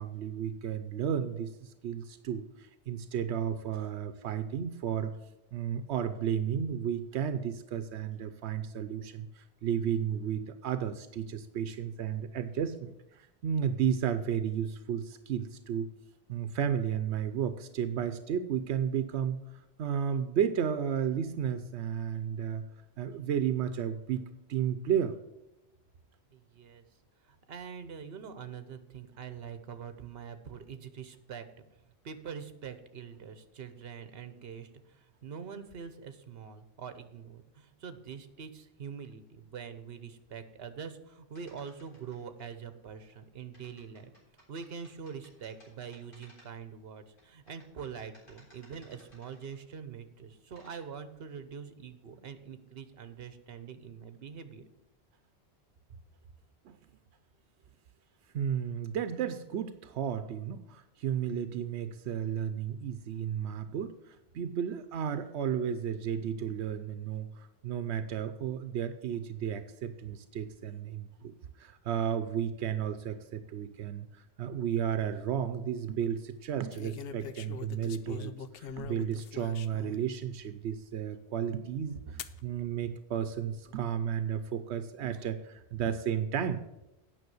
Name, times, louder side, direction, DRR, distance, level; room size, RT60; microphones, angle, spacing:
voice 1, 0.0-5.2 5.5-15.9 16.3-19.4 19.8-22.6 23.0-25.2 56.6-56.8 58.3-82.0 82.4-86.6, right 8 dB, 90° right, 11 dB, 0.9 m, -33 dB
voice 2, 26.3-26.8 27.3-31.4 32.0-44.1 44.5-54.6, right 6 dB, 65° right, 10 dB, 1.1 m, -44 dB
sound 1, 41.3-42.4 43.5-46.7 47.2-49.7 50.3-50.8, equal, 50° left, 4.0 m, -61 dB
sound 2, 75.0-75.5 76.7-80.1 80.7-80.8 82.2-82.4 83.3-83.8, left 6 dB, 65° left, 0.8 m, -44 dB
9.3 x 6.0 x 7.8 m, 0.93 s
omnidirectional pair, 1.1 m